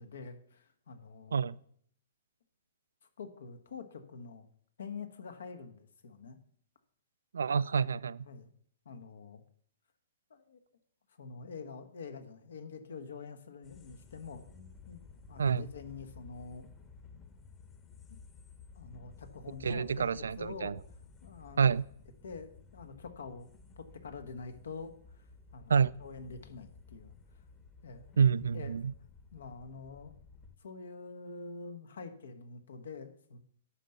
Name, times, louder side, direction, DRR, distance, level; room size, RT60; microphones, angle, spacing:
voice 1, 0.0-1.6 3.2-4.4 4.8-6.4 8.2-8.5 8.8-9.4 10.3-10.6 11.2-15.0 15.3-16.7 18.7-20.8 21.2-21.7 22.2-23.5 23.8-25.3 25.5-27.1 27.8-28.1 28.5-28.7 29.3-30.1 30.6-33.4, left 4 dB, 70° left, 9 dB, 1.4 m, -46 dB
voice 2, 7.3-8.2 15.4-15.6 19.6-20.7 21.6-21.8 25.7-25.9 28.2-28.9, right 6 dB, 75° right, 20 dB, 0.3 m, -28 dB
sound 1, 13.6-30.6, left 4 dB, 25° left, 1.2 m, -55 dB
9.9 x 5.9 x 6.7 m, 0.63 s
figure-of-eight pair, 115°, 0 cm